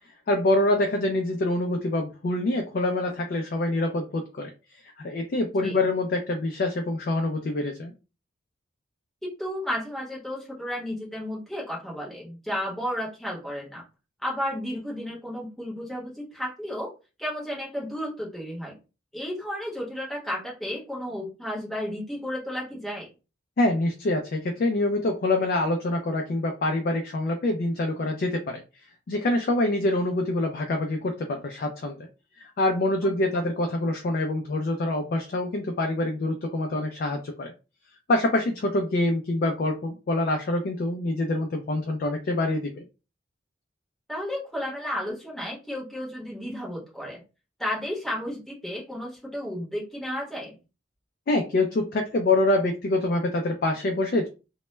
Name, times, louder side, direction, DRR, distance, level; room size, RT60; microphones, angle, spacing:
voice 1, 0.3-4.5 5.0-7.9 23.6-28.6 29.1-32.1 32.4-37.5 38.1-42.8 51.3-54.3, left 2 dB, 50° left, 4 dB, 0.3 m, -25 dB
voice 2, 9.2-13.8 14.2-16.9 17.2-18.8 19.1-23.1 33.0-33.1 44.1-47.2 47.6-50.6, equal, ahead, -4 dB, 0.9 m, -33 dB
2.1 x 2.1 x 3.0 m, 0.31 s
head